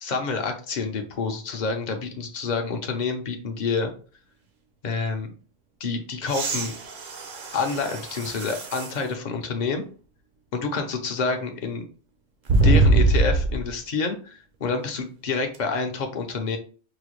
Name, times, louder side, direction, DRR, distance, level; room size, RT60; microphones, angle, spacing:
voice 1, 0.0-3.9 4.8-5.3 5.8-6.7 7.5-9.8 10.5-11.8 12.6-16.6, left 4 dB, 45° left, 5 dB, 0.7 m, -28 dB
sound 1, 6.2-9.0 9.7-9.8 12.5-13.7 15.5-15.6, right 2 dB, 55° right, 0.7 m, -22 dB
4.9 x 2.2 x 3.1 m, 0.38 s
omnidirectional pair, 1.2 m